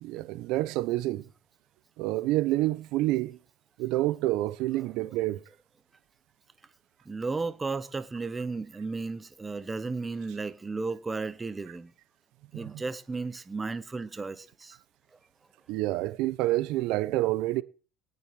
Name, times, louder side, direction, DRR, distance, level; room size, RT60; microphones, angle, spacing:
voice 1, 0.0-1.2 2.0-3.4 3.8-5.4 12.6-12.7 15.7-17.6, right 17 dB, 60° right, 0.8 m, -28 dB
voice 2, 7.0-11.9 12.5-14.8, right 3 dB, 10° right, 1.0 m, -34 dB
18.5 x 7.8 x 7.4 m
cardioid pair, 180°, 0 cm